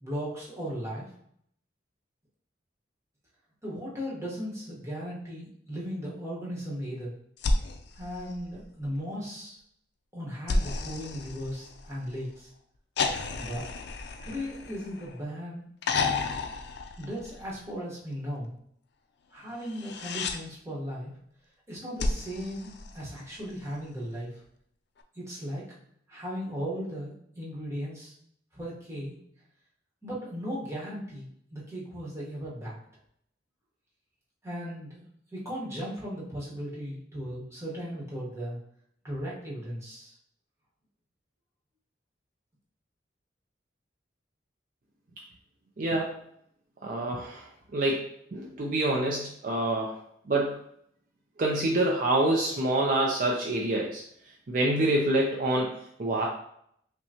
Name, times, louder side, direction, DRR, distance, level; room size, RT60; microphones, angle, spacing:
voice 1, 0.0-1.1 3.6-7.1 8.0-9.6 10.1-12.5 13.4-13.6 14.2-16.3 17.0-18.5 19.3-21.1 21.7-24.3 25.1-25.6 26.1-28.1 28.5-29.2 30.0-32.8 34.4-35.0 35.3-38.6 39.0-40.1, equal, 15° right, -6 dB, 1.1 m, -37 dB
sound 1, 7.4-9.0 10.5-12.2 13.0-15.2 15.8-17.7 19.6-20.4 22.0-23.5 25.0-25.1, left 3 dB, 65° left, 0.4 m, -32 dB
voice 2, 45.8-46.2 46.8-50.0 50.3-50.6 51.4-54.0 54.5-56.3, right 1 dB, 45° right, -1 dB, 0.4 m, -27 dB
5.5 x 2.2 x 2.8 m, 0.69 s
head